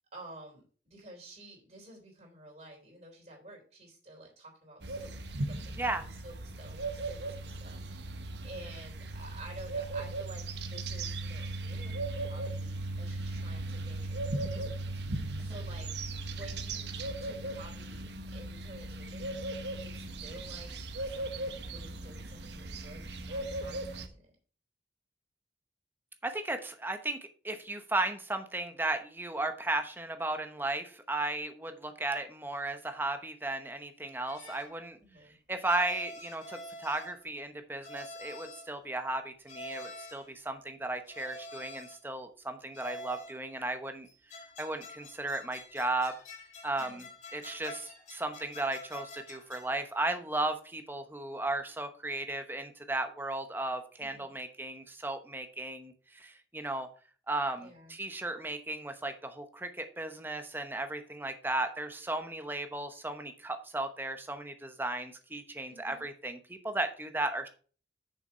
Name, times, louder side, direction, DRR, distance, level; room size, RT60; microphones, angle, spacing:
voice 1, 0.1-5.1 5.4-12.0 12.2-15.9 16.2-20.7 21.0-24.3 35.0-35.3 46.7-47.1 54.0-54.3 57.6-58.0 65.7-66.1, right 1 dB, 40° right, 0 dB, 3.5 m, -51 dB
sound 1, 4.8-24.1, right 2 dB, 80° right, 1.0 m, -38 dB
voice 2, 26.2-27.2 27.4-35.0 35.5-44.1 44.6-46.1 46.6-56.9 57.3-67.5, right 2 dB, 10° right, 7 dB, 0.9 m, -35 dB
sound 2, 34.3-34.8 35.6-37.3 37.8-38.7 39.5-40.3 41.1-42.1 42.7-43.4 44.0-49.8, left 1 dB, 40° left, 1.8 m, -47 dB
6.8 x 5.9 x 5.5 m, 0.40 s
head